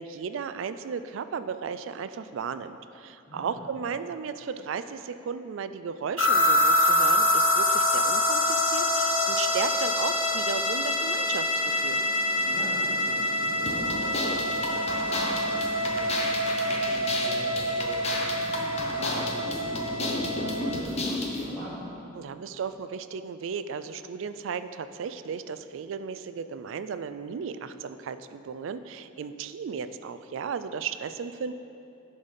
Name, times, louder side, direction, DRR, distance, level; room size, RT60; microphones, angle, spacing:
voice 1, 0.0-12.0 22.1-31.5, right 6 dB, 65° right, 12 dB, 0.3 m, -35 dB
voice 2, 3.3-3.6 12.3-21.8, equal, 10° left, -14 dB, 1.8 m, -42 dB
sound 1, 6.2-20.8, left 1 dB, 65° left, 0.9 m, -26 dB
sound 2, 13.7-21.5, left 2 dB, 30° left, 0.8 m, -32 dB
10.5 x 4.1 x 5.1 m, 2.7 s
head